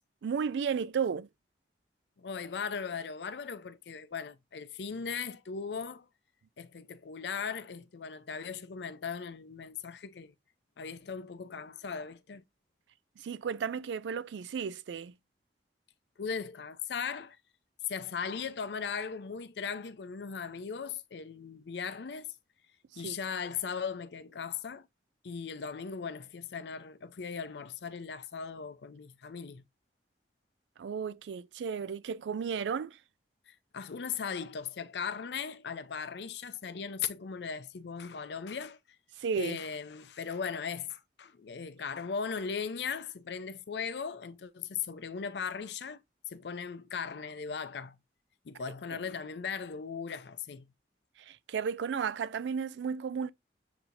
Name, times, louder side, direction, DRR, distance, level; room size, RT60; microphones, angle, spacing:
voice 1, 0.2-1.3 13.2-15.1 22.9-23.2 30.8-33.0 39.2-39.6 51.2-53.3, right 6 dB, 85° right, 0.3 m, -33 dB
voice 2, 2.2-6.1 6.6-10.3 10.8-12.4 16.2-17.4 17.9-22.3 23.0-24.9 25.2-29.6 33.5-38.8 39.4-48.0 48.5-50.7, left 6 dB, 70° left, 0.5 m, -38 dB
7.1 x 2.8 x 2.5 m
head